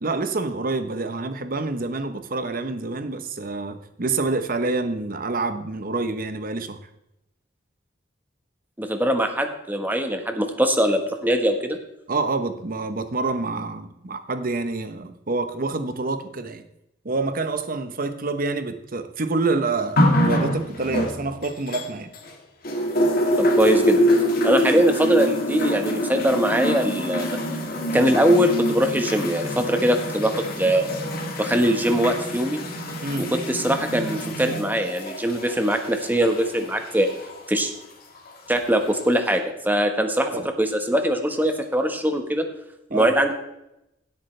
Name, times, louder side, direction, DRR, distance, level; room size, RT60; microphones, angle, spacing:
voice 1, 0.0-6.8 12.1-16.7 17.0-22.1 33.0-33.3 40.3-40.5 42.9-43.2, right 3 dB, 50° right, 9 dB, 1.0 m, -27 dB
voice 2, 8.8-11.8 23.4-24.0 24.4-27.4 27.9-31.0 31.4-32.6 33.2-37.1 37.5-37.7 38.5-40.3 40.6-42.4 42.9-43.3, equal, 10° right, 5 dB, 1.3 m, -22 dB
sound 1, 20.0-22.3 22.6-37.4 38.3-38.4, equal, 55° left, 2.0 m, -25 dB
16.5 x 8.5 x 3.3 m, 0.86 s
head